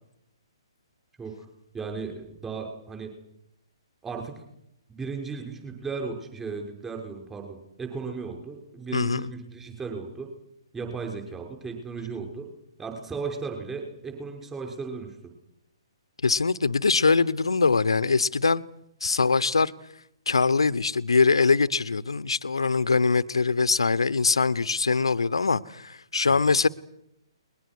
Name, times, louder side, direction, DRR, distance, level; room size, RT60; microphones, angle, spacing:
voice 1, 1.7-3.1 4.0-4.3 4.9-10.3 10.7-12.5 12.8-15.1 26.3-26.5, right 4 dB, 10° right, 6.3 m, -35 dB
voice 2, 8.9-9.3 16.2-18.6 19.0-19.7 20.3-26.7, left 4 dB, 75° left, 1.0 m, -22 dB
29.5 x 22.0 x 6.4 m
figure-of-eight pair, 130°, 3 cm